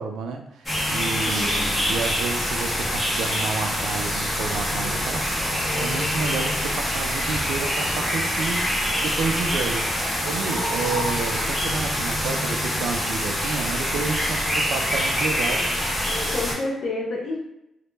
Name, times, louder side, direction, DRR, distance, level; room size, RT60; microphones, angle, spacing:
voice 1, 0.0-15.9, right 5 dB, 90° right, 4 dB, 0.3 m, -31 dB
sound 1, 0.7-16.5, equal, 15° left, 0.7 m, -25 dB
voice 2, 1.2-1.7 16.3-17.4, left 2 dB, 60° left, -1 dB, 0.6 m, -29 dB
sound 2, 4.1-12.1, right 1 dB, 35° right, 0.5 m, -41 dB
2.1 x 2.0 x 3.1 m, 0.83 s
cardioid pair, 135°, 0 cm